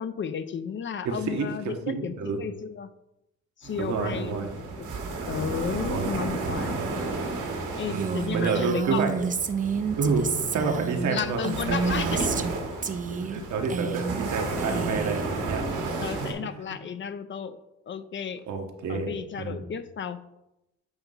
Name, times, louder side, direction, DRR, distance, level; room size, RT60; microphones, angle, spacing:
voice 1, 0.0-2.9 3.6-4.5 4.8-4.9 5.3-6.8 7.8-9.0 11.1-12.5 16.0-17.6 17.9-18.4 18.9-20.2, left 7 dB, 40° left, 12 dB, 0.5 m, -33 dB
voice 2, 1.0-2.4 3.7-4.5 5.9-6.1 7.9-9.2 10.0-11.4 11.7-11.8 13.2-16.0 16.4-16.8 18.5-19.1 19.4-19.6, right 4 dB, 70° right, 3 dB, 1.2 m, -29 dB
sound 1, 3.6-16.3, right 3 dB, 85° right, 1.8 m, -33 dB
Female speech woman speaking, 7.9-12.5 12.8-13.4 13.6-14.3 14.6-15.2, right 6 dB, 25° right, 0.4 m, -30 dB
8.0 x 2.9 x 5.4 m, 0.91 s
cardioid pair, 90°, 30 cm